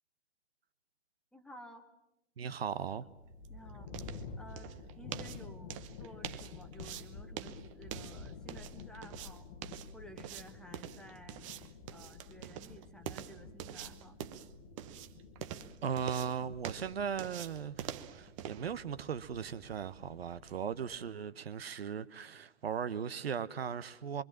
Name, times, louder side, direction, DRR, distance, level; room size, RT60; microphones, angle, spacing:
voice 1, 1.3-1.8 3.5-3.9 4.4-11.4 11.9-14.2, equal, ahead, 1.4 m, -54 dB
voice 2, 2.4-3.1 15.8-24.2, right 7 dB, 55° right, 1.1 m, -38 dB
sound 1, 2.8-20.6, right 11 dB, 25° right, 1.0 m, -47 dB
sound 2, 3.0-21.1, left 5 dB, 35° left, 1.5 m, -51 dB
25.0 x 24.5 x 7.4 m
figure-of-eight pair, 130°, 36 cm